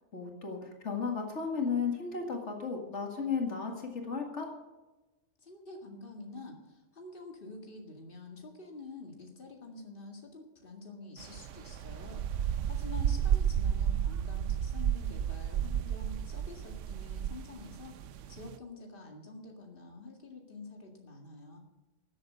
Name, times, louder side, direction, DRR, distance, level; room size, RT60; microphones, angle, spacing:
voice 1, 0.1-4.5, left 5 dB, 75° left, 1 dB, 2.3 m, -34 dB
voice 2, 5.4-12.4 12.7-17.9 18.3-21.6, left 2 dB, 50° left, 2 dB, 2.2 m, -48 dB
sound 1, 11.2-18.6, right 9 dB, 85° right, 1.0 m, -32 dB
13.0 x 8.2 x 7.9 m, 1.1 s
omnidirectional pair, 1.2 m